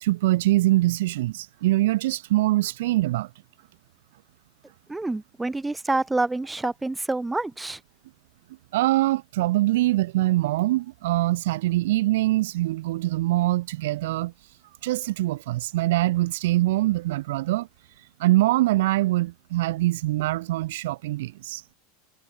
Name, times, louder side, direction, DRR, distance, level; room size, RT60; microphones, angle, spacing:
voice 1, 0.0-3.3 8.7-14.3 14.8-17.7 18.2-21.6, right 17 dB, 75° right, 0.5 m, -23 dB
voice 2, 4.9-7.8, right 2 dB, 10° right, 0.7 m, -27 dB
hypercardioid pair, 95°, 0 cm